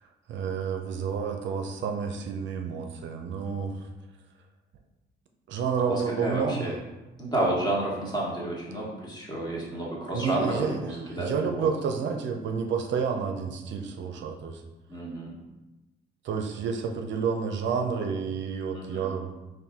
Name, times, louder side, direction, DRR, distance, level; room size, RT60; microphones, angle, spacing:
voice 1, 0.3-3.8 5.5-6.7 10.1-10.8 11.0-14.6 16.2-19.3, right 6 dB, 70° right, 4 dB, 0.5 m, -30 dB
voice 2, 5.9-6.8 7.2-11.7 14.9-15.4 18.7-19.1, right 1 dB, 20° left, -4 dB, 1.3 m, -30 dB
4.0 x 2.6 x 3.5 m, 1.1 s
cardioid pair, 90°, 20 cm